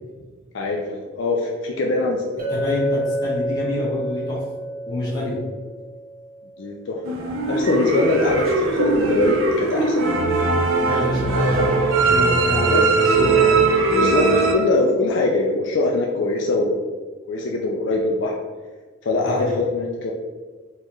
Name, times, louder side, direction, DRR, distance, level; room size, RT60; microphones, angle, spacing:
voice 1, 0.5-2.5 6.6-7.0 7.5-10.1 11.3-11.9 12.7-12.9 13.1-13.5 13.8-16.9 17.3-18.4 19.0-20.1, left 2 dB, 60° left, 0 dB, 0.4 m, -23 dB
Chink clink, 2.4-6.6, right 1 dB, 40° right, 0.8 m, -29 dB
voice 2, 2.5-4.4 4.9-5.4 10.8-13.4 19.2-19.6, left 1 dB, 20° left, -7 dB, 1.1 m, -27 dB
sound 1, 7.0-14.5, right 3 dB, 70° right, 0.5 m, -20 dB
4.3 x 2.4 x 3.0 m, 1.4 s
head